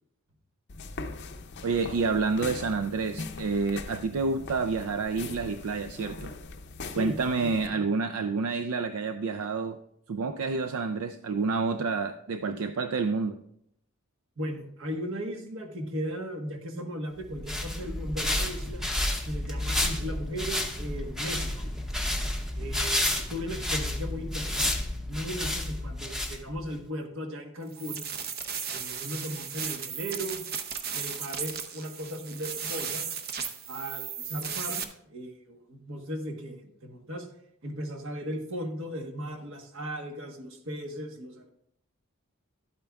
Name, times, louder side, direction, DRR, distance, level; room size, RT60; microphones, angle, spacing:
sound 1, 0.7-7.7, left 3 dB, 50° left, 0.5 m, -41 dB
voice 1, 1.6-6.3 6.9-9.8 10.1-13.4, right 4 dB, 85° right, 9 dB, 0.4 m, -29 dB
voice 2, 6.8-7.8 14.4-18.8 19.2-21.7 22.5-28.0 28.7-30.4 30.9-33.0 33.7-37.3 37.6-41.5, equal, 60° right, 4 dB, 1.2 m, -37 dB
sound 2, 17.2-26.7, left 1 dB, ahead, 0.7 m, -31 dB
sound 3, 27.7-34.8, right 7 dB, 45° right, 0.7 m, -35 dB
12.0 x 8.6 x 2.3 m, 0.73 s
head